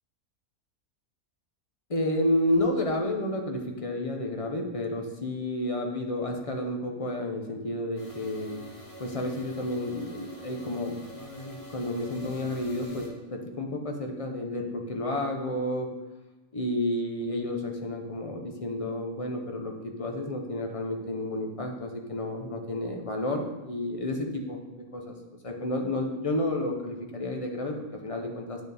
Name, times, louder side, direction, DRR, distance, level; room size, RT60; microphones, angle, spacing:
voice 1, 1.9-8.7 9.0-15.9 16.5-19.7 20.0-25.1 25.4-28.6, left 1 dB, 30° left, 2 dB, 0.7 m, -31 dB
sound 1, 8.0-13.1, equal, 55° left, 2.0 m, -46 dB
9.0 x 4.2 x 3.5 m, 1.2 s
omnidirectional pair, 1.5 m